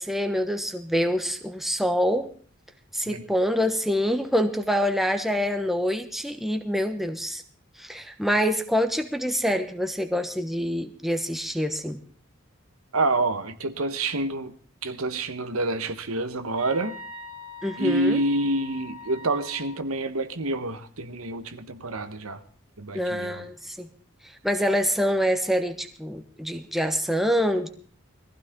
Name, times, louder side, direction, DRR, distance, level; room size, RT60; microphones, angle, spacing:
voice 1, 0.0-2.3 2.9-7.4 7.8-12.0 17.6-18.2 22.9-23.9 24.4-27.7, equal, ahead, 1.2 m, -26 dB
voice 2, 12.9-14.5 14.8-16.9 17.8-22.4 22.8-23.5, right 2 dB, 85° right, 1.3 m, -27 dB
sound 1, 16.6-19.8, left 3 dB, 20° right, 2.7 m, -42 dB
22.0 x 15.0 x 3.8 m
head